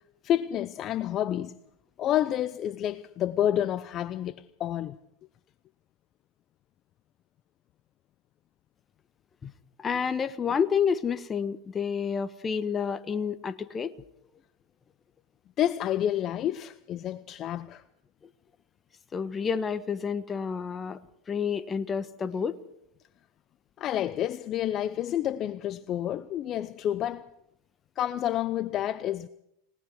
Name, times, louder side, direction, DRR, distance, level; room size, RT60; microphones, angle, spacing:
voice 1, 0.2-1.5 2.0-5.0 15.6-17.8 23.8-27.2 28.0-29.3, left 11 dB, 40° left, 0.7 m, -29 dB
voice 2, 9.8-13.9 19.1-21.0 21.3-22.6, left 6 dB, 25° left, 1.3 m, -29 dB
29.5 x 19.0 x 4.8 m
hypercardioid pair, 100°, 0 cm